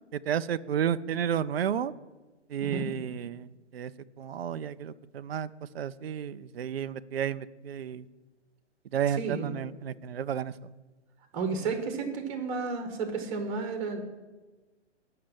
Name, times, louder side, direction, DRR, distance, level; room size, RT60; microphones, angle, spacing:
voice 1, 0.1-1.9 2.5-3.9 4.2-5.5 5.7-8.1 8.9-10.7, right 9 dB, 60° right, 15 dB, 0.5 m, -32 dB
voice 2, 9.1-9.5 11.3-14.0, right 4 dB, 30° right, 6 dB, 1.6 m, -32 dB
8.5 x 6.5 x 7.3 m, 1.2 s
figure-of-eight pair, 125°, 35 cm